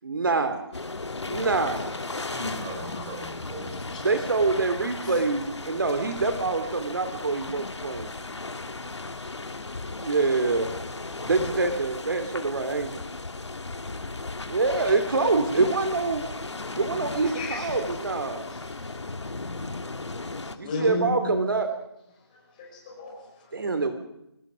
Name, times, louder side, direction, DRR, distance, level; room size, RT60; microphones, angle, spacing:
voice 1, 0.0-0.6 1.3-1.9 4.0-8.1 10.0-10.7 11.2-13.0 14.5-16.2 16.8-18.4 20.6-21.7 23.5-24.0, right 3 dB, 50° right, 8 dB, 2.8 m, -25 dB
sound 1, 0.7-20.6, left 3 dB, 85° left, 2.1 m, -36 dB
voice 2, 2.1-4.1 6.6-6.9, right 1 dB, 10° right, 0 dB, 4.7 m, -38 dB
voice 3, 17.3-17.7 18.5-18.9 20.0-21.4 22.6-23.5, left 2 dB, 20° left, 0 dB, 5.4 m, -35 dB
25.5 x 19.0 x 6.3 m, 0.83 s
figure-of-eight pair, 170°, 14 cm